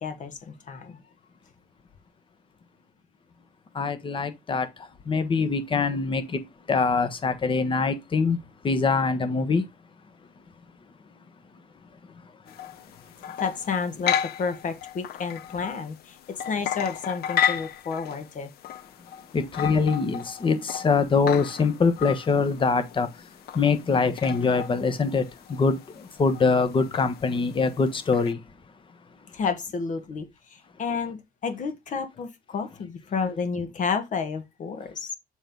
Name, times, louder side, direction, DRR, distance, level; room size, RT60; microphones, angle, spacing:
voice 1, 0.0-1.0 13.4-18.5 29.3-35.1, left 5 dB, 50° left, 1.5 m, -31 dB
voice 2, 3.7-4.7 5.1-6.2 6.7-8.4 8.6-9.6 19.3-23.1 23.5-25.2 25.6-25.8 26.2-28.4, left 4 dB, 30° left, 1.3 m, -23 dB
sound 1, 12.5-28.3, left 9 dB, 70° left, 0.8 m, -34 dB
7.0 x 3.9 x 5.3 m
cardioid pair, 110°, 17 cm